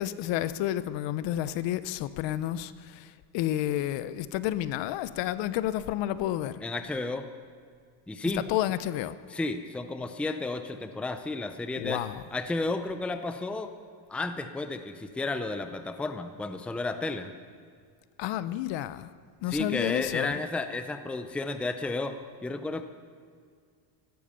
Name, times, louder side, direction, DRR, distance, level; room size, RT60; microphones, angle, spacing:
voice 1, 0.0-6.6 8.4-9.2 11.8-12.2 18.2-19.1 19.4-20.4, left 13 dB, 60° left, 14 dB, 0.8 m, -30 dB
voice 2, 6.6-7.3 8.1-8.5 9.3-12.0 12.3-13.7 14.1-17.3 19.5-22.8, left 3 dB, ahead, 8 dB, 0.6 m, -32 dB
15.0 x 12.5 x 6.9 m, 2.1 s
cardioid pair, 135°, 49 cm